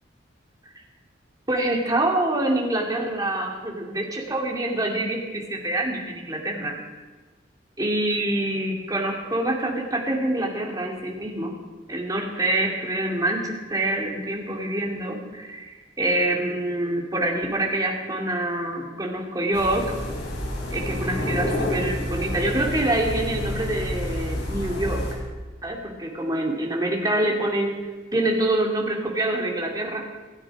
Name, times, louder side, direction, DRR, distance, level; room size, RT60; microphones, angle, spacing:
voice 1, 1.5-6.8 7.8-11.5 11.9-19.9 20.7-25.0 25.6-27.7 28.1-30.0, right 1 dB, 20° right, 0 dB, 2.7 m, -26 dB
sound 1, 19.5-25.1, left 1 dB, 60° left, 4.6 m, -29 dB
27.0 x 10.0 x 4.9 m, 1.3 s
head